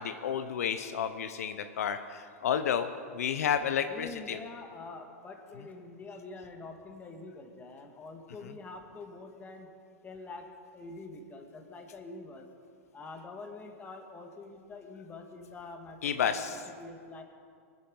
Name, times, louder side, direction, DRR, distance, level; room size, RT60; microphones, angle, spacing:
voice 1, 0.0-4.4 16.0-16.6, left 8 dB, 80° left, 9 dB, 0.8 m, -31 dB
voice 2, 3.9-9.7 10.0-12.5 12.9-17.2, left 3 dB, 20° left, 3 dB, 2.0 m, -46 dB
21.5 x 9.6 x 5.4 m, 2.2 s
hypercardioid pair, 115°, 8 cm